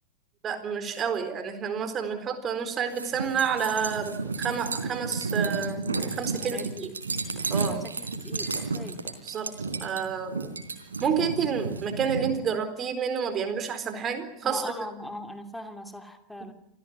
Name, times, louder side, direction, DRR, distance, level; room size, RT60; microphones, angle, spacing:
voice 1, 0.4-6.9 7.5-7.8 9.2-9.5 9.8-10.4 11.0-14.6, right 7 dB, 25° right, 9 dB, 4.1 m, -29 dB
sound 1, 2.9-12.4, right 4 dB, 75° right, 3.9 m, -32 dB
voice 2, 6.5-6.9 7.7-9.0 14.4-16.5, left 1 dB, 5° left, 7 dB, 2.7 m, -40 dB
27.0 x 16.5 x 9.6 m, 0.80 s
figure-of-eight pair, 90°, 0 cm